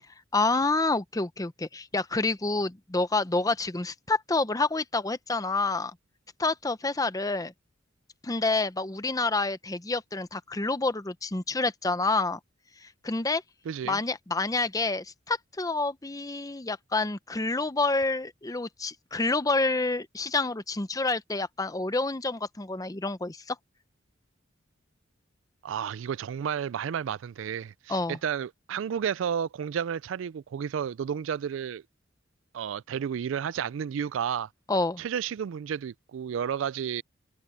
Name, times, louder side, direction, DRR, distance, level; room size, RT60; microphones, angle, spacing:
voice 1, 0.3-5.9 6.4-7.5 8.2-12.4 12.8-13.4 13.8-23.6 27.9-28.2 34.7-35.0, left 3 dB, 20° left, 0.7 m, -28 dB
voice 2, 13.7-14.0 25.6-31.8 32.5-34.5 35.0-37.0, right 8 dB, 85° right, 0.3 m, -32 dB
head